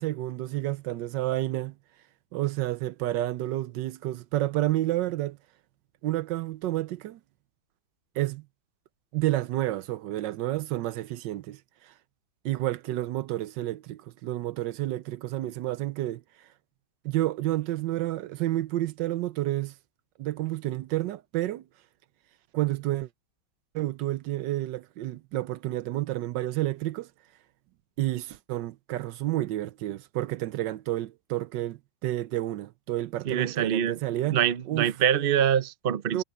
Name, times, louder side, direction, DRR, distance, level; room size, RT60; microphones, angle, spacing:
voice 1, 0.0-1.7 2.3-5.4 6.0-7.2 8.1-8.4 9.1-11.9 12.4-16.2 17.0-19.7 20.2-21.6 22.5-23.1 23.7-27.1 28.0-34.4 34.7-34.9 36.1-36.2, right 15 dB, 75° right, 1.2 m, -30 dB
voice 2, 33.2-34.0 34.3-36.2, right 9 dB, 55° right, 0.6 m, -25 dB
omnidirectional pair, 2.1 m